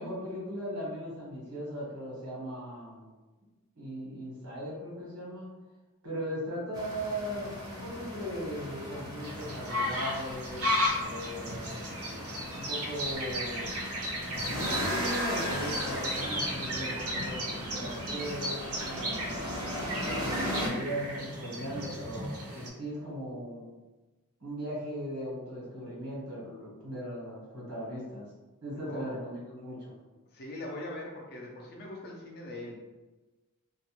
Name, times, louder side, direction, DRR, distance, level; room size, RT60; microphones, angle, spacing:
voice 1, 0.0-3.1 3.8-5.5 6.0-11.9 12.5-13.7 14.2-19.3 20.2-23.6 24.4-28.3 28.6-30.0, equal, 90° right, -5 dB, 1.1 m, -38 dB
sound 1, 6.7-20.7, equal, 15° right, 0.6 m, -37 dB
sound 2, 9.2-22.7, equal, 65° right, 0.6 m, -35 dB
voice 2, 28.8-29.2 30.3-32.8, left 1 dB, 45° left, -1 dB, 0.6 m, -41 dB
2.5 x 2.1 x 2.9 m, 1.2 s
head